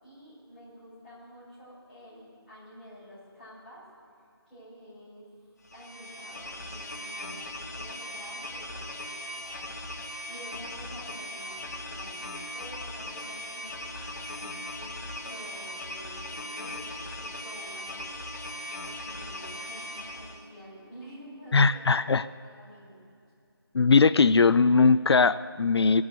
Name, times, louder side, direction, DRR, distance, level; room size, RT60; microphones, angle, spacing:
voice 1, 0.0-3.8 4.4-5.3 5.7-9.7 10.3-18.2 18.5-22.0 22.3-23.0, equal, ahead, -20 dB, 5.0 m, -49 dB
sound 1, 5.7-20.5, left 1 dB, 40° left, 1.3 m, -39 dB
voice 2, 21.5-22.3 23.7-26.0, left 4 dB, 80° left, 16 dB, 0.4 m, -20 dB
19.0 x 8.5 x 8.1 m, 2.4 s
figure-of-eight pair, 180°, 13 cm